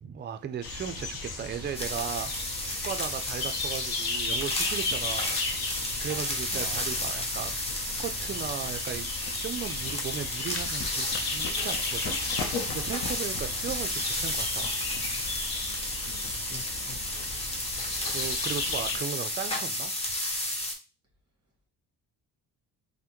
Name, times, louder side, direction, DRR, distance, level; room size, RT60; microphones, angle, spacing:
voice 1, 0.0-5.6 6.0-7.5 7.8-9.1 9.4-12.2 12.5-14.8 18.1-19.9, right 8 dB, 25° right, 0.4 m, -37 dB
sound 1, 0.6-19.0, left 4 dB, 60° left, 0.8 m, -35 dB
sound 2, 1.7-20.7, left 1 dB, 15° left, 0.8 m, -32 dB
voice 2, 6.5-7.3 13.4-13.9 16.0-17.1, equal, 10° right, 1.6 m, -47 dB
3.3 x 2.2 x 3.0 m
cardioid pair, 70°, 41 cm